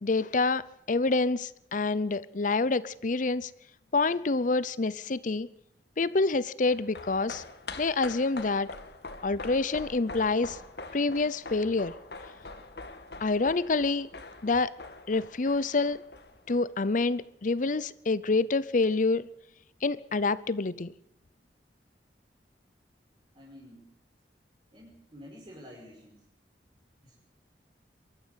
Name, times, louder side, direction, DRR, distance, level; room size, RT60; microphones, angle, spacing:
voice 1, 0.0-3.5 3.9-5.5 6.0-7.4 7.8-8.7 9.2-10.6 10.9-11.9 13.2-14.1 14.4-14.7 15.1-16.0 16.5-19.2 19.8-20.9, left 3 dB, 45° left, 18 dB, 0.7 m, -27 dB
sound 1, 6.6-17.2 17.5-17.6, left 3 dB, 65° left, 2.3 m, -44 dB
voice 2, 23.3-23.9 24.7-26.2 27.0-27.2, equal, 30° right, -4 dB, 5.6 m, -49 dB
24.0 x 14.0 x 8.1 m, 0.77 s
head